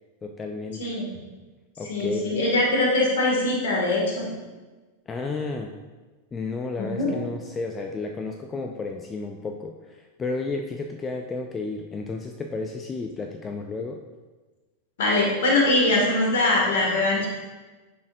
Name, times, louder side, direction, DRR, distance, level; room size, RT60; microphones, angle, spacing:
voice 1, 0.2-0.9 1.8-2.2 5.1-5.7 6.3-14.0, left 3 dB, 20° left, 3 dB, 0.5 m, -32 dB
voice 2, 0.8-1.1 1.9-4.3 6.8-7.2 15.0-17.3, left 2 dB, 60° left, -2 dB, 2.1 m, -22 dB
9.9 x 6.3 x 2.7 m, 1.3 s
figure-of-eight pair, 90°, 0 cm